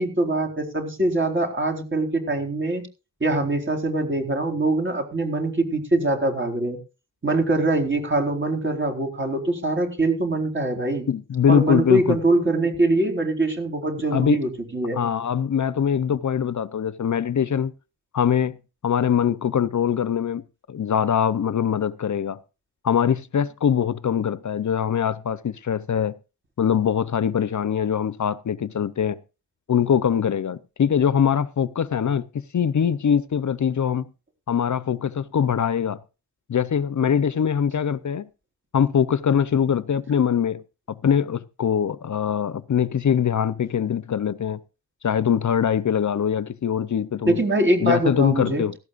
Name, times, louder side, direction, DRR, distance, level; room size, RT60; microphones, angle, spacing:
voice 1, 0.0-2.8 3.2-6.8 7.2-11.1 11.5-15.0 47.3-48.6, right 2 dB, 35° right, 4.2 m, -23 dB
voice 2, 11.1-12.2 14.1-14.4 14.9-17.7 18.1-18.6 18.8-20.4 20.7-22.4 22.8-26.2 26.6-29.2 29.7-34.1 34.5-36.0 36.5-38.3 38.7-40.6 40.9-44.6 45.0-47.4 47.8-48.7, left 8 dB, 60° left, 0.7 m, -22 dB
17.5 x 15.5 x 2.5 m
wide cardioid pair, 145°, 33 cm